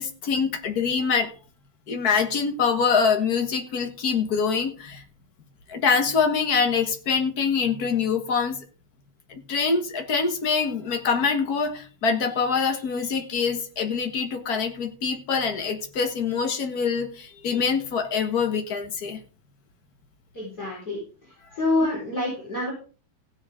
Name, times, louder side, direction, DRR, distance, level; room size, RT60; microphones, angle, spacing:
voice 1, 0.0-1.3 1.9-5.0 5.7-8.6 9.3-19.2, left 5 dB, 55° left, 6 dB, 1.0 m, -24 dB
voice 2, 20.3-21.0 21.5-22.7, left 2 dB, 30° left, -5 dB, 5.2 m, -26 dB
16.0 x 8.6 x 3.6 m, 0.37 s
omnidirectional pair, 3.6 m